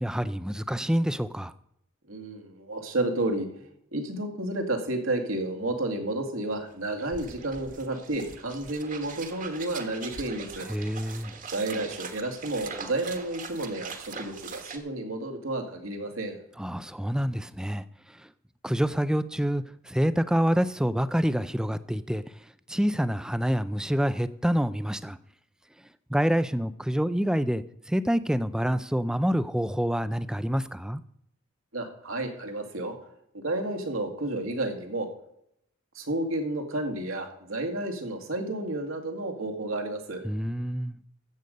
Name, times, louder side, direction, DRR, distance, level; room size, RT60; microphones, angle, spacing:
voice 1, 0.0-1.5 10.7-11.3 16.6-17.8 18.6-22.2 22.7-25.2 26.1-31.0 40.2-41.0, equal, 5° right, 0.4 m, -27 dB
voice 2, 2.1-10.7 11.5-16.4 31.7-33.0 33.3-35.1 35.9-40.2, right 2 dB, 85° right, 2.1 m, -31 dB
sound 1, 6.8-14.8, right 5 dB, 40° right, 1.4 m, -41 dB
14.0 x 8.1 x 5.2 m
head